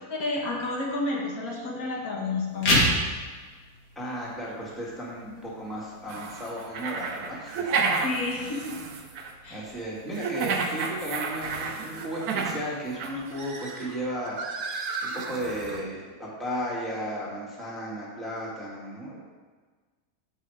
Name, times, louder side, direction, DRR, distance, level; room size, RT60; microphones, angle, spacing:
voice 1, 0.1-2.9 8.0-8.8 9.4-9.6, left 2 dB, 65° left, -2 dB, 1.5 m, -30 dB
sound 1, 1.5-1.7 2.3-2.4 4.5-4.6 8.1-8.2 11.4-11.9 12.9-15.8, right 4 dB, 50° right, 0.6 m, -37 dB
sound 2, 2.5-13.5, left 1 dB, 85° left, 2.4 m, -34 dB
voice 2, 4.0-7.8 9.5-19.2, equal, ahead, -6 dB, 2.0 m, -35 dB
sound 3, 6.1-9.3 10.2-12.7 13.0-13.1, right 4 dB, 75° right, 1.2 m, -30 dB
8.2 x 5.6 x 4.9 m, 1.4 s
omnidirectional pair, 1.7 m